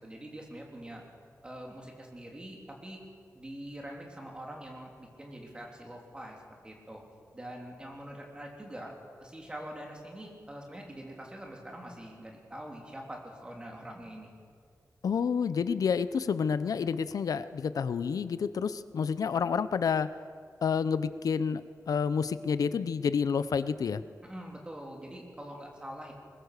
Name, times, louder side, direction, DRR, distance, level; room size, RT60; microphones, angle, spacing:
voice 1, 0.0-1.0 1.4-3.0 3.3-7.0 7.3-8.9 9.2-14.3 24.2-26.1, right 1 dB, 15° right, 0 dB, 3.2 m, -44 dB
voice 2, 15.0-20.1 20.6-21.6 21.9-24.0, left 6 dB, 85° left, 14 dB, 0.7 m, -29 dB
21.5 x 21.0 x 6.7 m, 2.1 s
wide cardioid pair, 175°, 6 cm